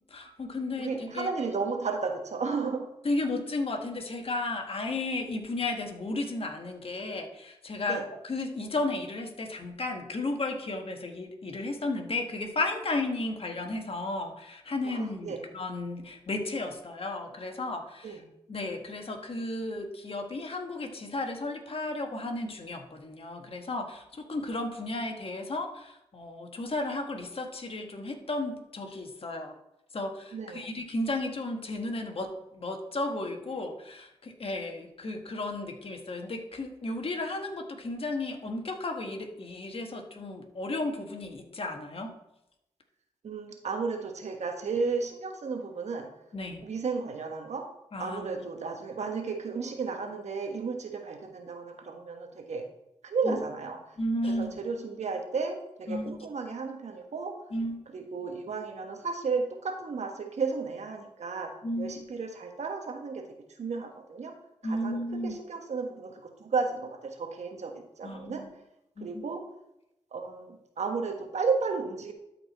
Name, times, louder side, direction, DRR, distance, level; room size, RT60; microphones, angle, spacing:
voice 1, 0.1-1.3 3.0-18.2 18.5-29.5 29.9-42.1 46.3-46.6 47.9-48.4 53.2-53.4 54.0-54.6 55.9-56.1 57.5-57.8 61.6-62.0 64.6-65.4 68.0-68.5 69.0-69.2, left 2 dB, 50° left, 4 dB, 1.4 m, -34 dB
voice 2, 0.8-2.9 7.9-8.0 14.8-15.4 18.0-18.2 30.3-30.6 43.2-46.1 46.6-47.7 48.0-52.6 53.0-53.8 54.2-57.4 57.9-63.3 63.6-64.3 64.6-65.0 65.2-68.4 69.0-69.5 70.1-72.1, right 4 dB, 70° right, 4 dB, 1.4 m, -33 dB
12.5 x 4.6 x 4.2 m, 0.85 s
cardioid pair, 50°, 12 cm